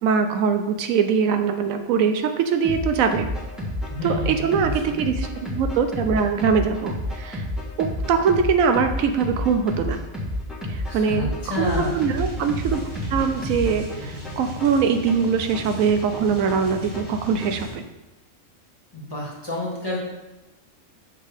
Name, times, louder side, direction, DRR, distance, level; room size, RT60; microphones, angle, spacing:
voice 1, 0.0-3.3 4.0-7.5 7.8-10.0 10.7-12.8 13.1-17.8, right 6 dB, 80° right, 7 dB, 1.0 m, -22 dB
sound 1, 2.6-17.7, left 1 dB, ahead, 1.5 m, -31 dB
voice 2, 3.9-5.0 10.8-11.9 18.9-20.0, left 1 dB, 20° left, -5 dB, 1.8 m, -30 dB
sound 2, 11.6-17.8, right 1 dB, 15° right, 2.7 m, -36 dB
7.0 x 5.8 x 3.5 m, 1.0 s
omnidirectional pair, 1.4 m